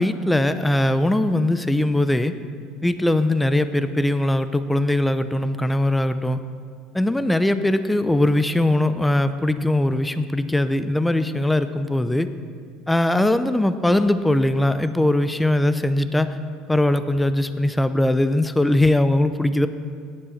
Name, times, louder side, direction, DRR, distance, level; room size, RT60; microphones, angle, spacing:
voice 1, 0.0-2.3 2.8-6.4 6.9-12.3 12.9-16.4 16.7-19.7, left 1 dB, 10° left, 12 dB, 0.9 m, -20 dB
17.5 x 11.0 x 5.9 m, 2.1 s
hypercardioid pair, 70°, 0 cm